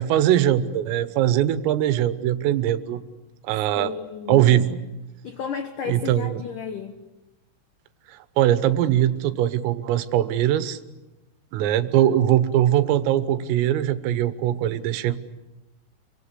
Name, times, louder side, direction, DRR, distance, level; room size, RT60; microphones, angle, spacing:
voice 1, 0.0-3.0 3.4-3.9 4.3-4.8 5.9-6.4 8.4-10.8 11.5-15.2, right 12 dB, 80° right, 12 dB, 3.7 m, -21 dB
voice 2, 3.7-4.5 5.2-7.0, left 6 dB, 85° left, 7 dB, 1.8 m, -33 dB
27.0 x 25.5 x 8.3 m, 1.0 s
omnidirectional pair, 6.0 m